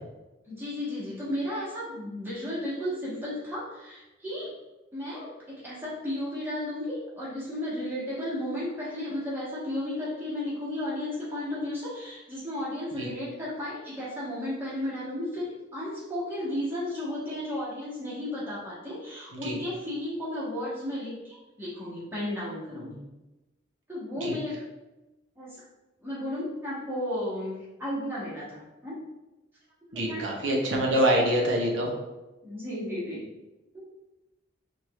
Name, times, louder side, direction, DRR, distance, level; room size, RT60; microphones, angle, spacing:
voice 1, 0.5-4.5 4.9-23.0 23.9-24.6 25.4-25.6 26.0-28.9 29.9-30.2 30.7-31.1 32.4-33.2 33.7-33.8, left 1 dB, 10° right, -9 dB, 1.4 m, -34 dB
voice 2, 29.9-31.9, right 1 dB, 75° right, -1 dB, 0.9 m, -25 dB
4.7 x 2.6 x 3.1 m, 1.1 s
head